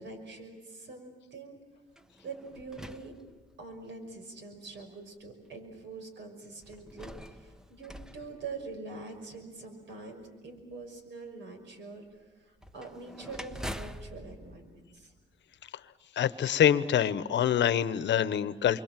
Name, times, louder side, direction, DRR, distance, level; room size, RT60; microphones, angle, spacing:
voice 1, 0.0-1.6 2.2-3.1 3.6-15.1, right 3 dB, 65° right, 5 dB, 6.0 m, -44 dB
sound 1, 1.9-3.9 4.7-4.8 6.6-9.2 12.6-15.7, equal, 5° right, 0.9 m, -45 dB
voice 2, 16.2-18.8, left 9 dB, 65° left, 14 dB, 1.1 m, -25 dB
28.0 x 24.5 x 7.6 m, 1.3 s
cardioid pair, 90°, 20 cm